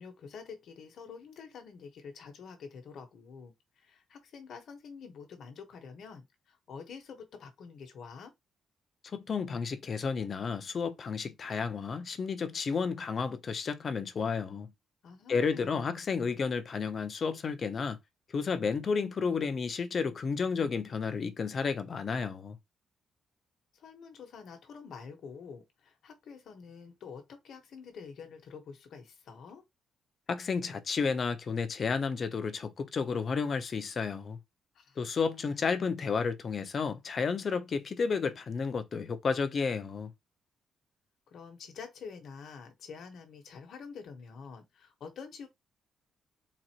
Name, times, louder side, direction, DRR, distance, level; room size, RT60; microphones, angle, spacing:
voice 1, 0.0-8.3 15.0-15.9 23.7-29.6 34.7-35.0 35.4-35.8 41.3-45.5, left 5 dB, 70° left, 1.1 m, -47 dB
voice 2, 9.1-14.7 15.3-18.0 18.3-22.6 30.3-34.4 35.0-40.1, left 5 dB, 45° left, 0.6 m, -32 dB
4.0 x 2.5 x 2.9 m
cardioid pair, 105°, 0 cm